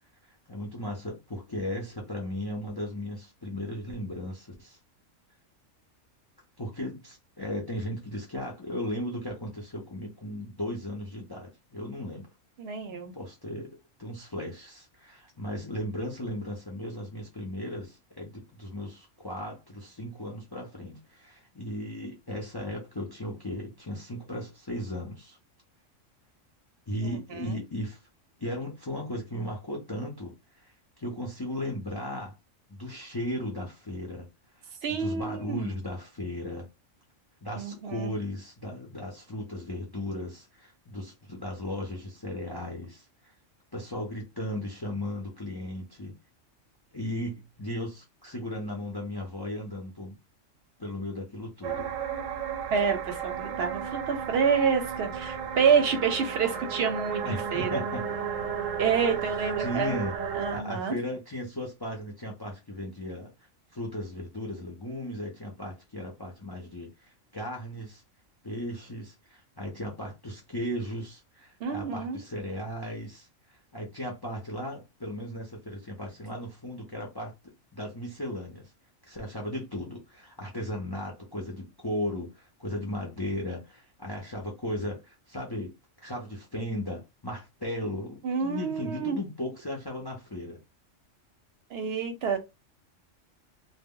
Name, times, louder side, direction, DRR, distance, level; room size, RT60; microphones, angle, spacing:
voice 1, 0.2-4.8 6.6-12.3 13.1-13.7 14.0-25.4 26.9-28.0 28.4-32.3 32.7-34.3 34.5-36.7 37.4-43.3 43.7-46.2 46.9-50.2 50.8-52.0 57.2-58.0 59.6-60.1 60.5-63.3 63.7-68.0 68.4-77.4 77.7-78.7 79.0-85.7 86.0-90.6, left 1 dB, 40° left, 0.3 m, -36 dB
voice 2, 12.6-13.1 27.1-27.6 34.8-35.7 37.6-38.1 52.7-57.8 58.8-60.0 60.3-61.0 71.6-72.2 88.2-89.2 91.7-92.4, right 6 dB, 60° right, 0.8 m, -28 dB
sound 1, 51.6-60.6, right 7 dB, 85° right, 1.0 m, -33 dB
2.1 x 2.1 x 3.6 m
omnidirectional pair, 1.3 m